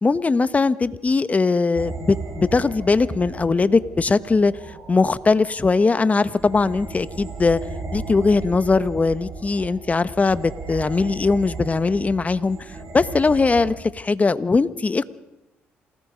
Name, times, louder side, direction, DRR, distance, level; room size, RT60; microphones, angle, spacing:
voice 1, 0.0-4.5 4.9-7.6 7.9-12.6 12.9-15.1, left 4 dB, 30° left, 14 dB, 1.2 m, -20 dB
sound 1, 1.8-13.7, right 3 dB, 50° right, 7.3 m, -36 dB
28.0 x 18.5 x 5.2 m, 0.93 s
supercardioid pair, 65°, 5 cm